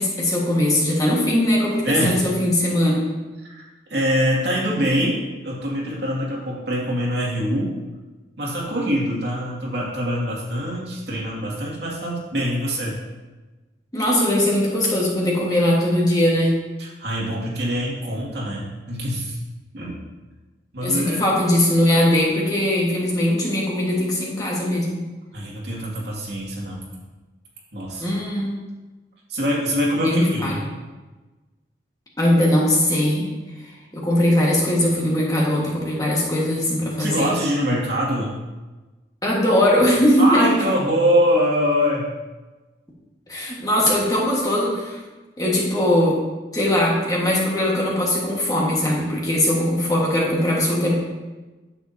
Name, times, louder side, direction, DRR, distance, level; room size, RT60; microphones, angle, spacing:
voice 1, 0.0-3.0 13.9-16.5 20.8-24.9 28.0-28.6 30.0-30.6 32.2-33.2 33.9-37.3 39.2-40.4 43.3-45.0 45.4-46.2 46.5-50.9, left 1 dB, 20° left, -4 dB, 1.6 m, -20 dB
voice 2, 1.8-2.2 3.9-7.8 8.4-13.0 16.8-19.4 19.7-20.0 20.7-21.2 25.3-26.9 27.7-28.1 29.3-30.6 37.0-38.4 40.2-42.1, equal, 70° right, -4 dB, 2.4 m, -24 dB
9.5 x 7.7 x 2.8 m, 1.2 s
head